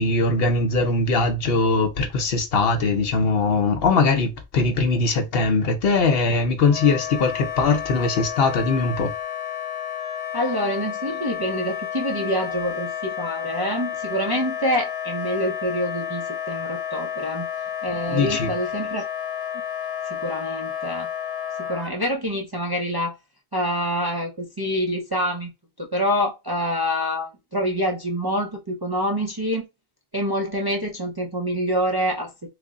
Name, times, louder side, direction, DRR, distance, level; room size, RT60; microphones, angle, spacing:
voice 1, 0.0-9.1 18.1-18.5, left 3 dB, 65° left, 0.9 m, -21 dB
Wind instrument woodwind instrument, 6.6-21.9, left 9 dB, 80° left, 1.0 m, -31 dB
voice 2, 10.3-17.5 17.8-19.1 19.5-19.6 20.1-21.1 21.6-23.2 23.5-25.5 25.8-29.7 30.1-32.3, equal, 30° right, 0.4 m, -26 dB
3.3 x 2.1 x 3.6 m
omnidirectional pair, 1.1 m